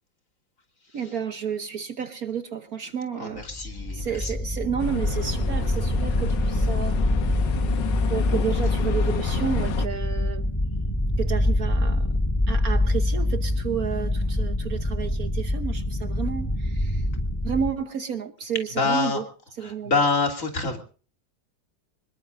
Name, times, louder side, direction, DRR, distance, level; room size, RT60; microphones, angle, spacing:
voice 1, 0.9-3.5 3.9-7.0 8.1-10.6 11.2-12.2 12.5-17.1 17.4-19.3 19.6-19.9, right 7 dB, 55° right, 10 dB, 1.4 m, -31 dB
voice 2, 3.1-4.3 18.8-19.2 19.6-20.8, left 4 dB, 45° left, 4 dB, 3.2 m, -26 dB
sound 1, 3.4-17.7, left 1 dB, 10° left, 2.0 m, -25 dB
sound 2, 4.8-9.9, left 9 dB, 75° left, 1.7 m, -31 dB
25.5 x 21.5 x 2.6 m, 0.40 s
omnidirectional pair, 2.0 m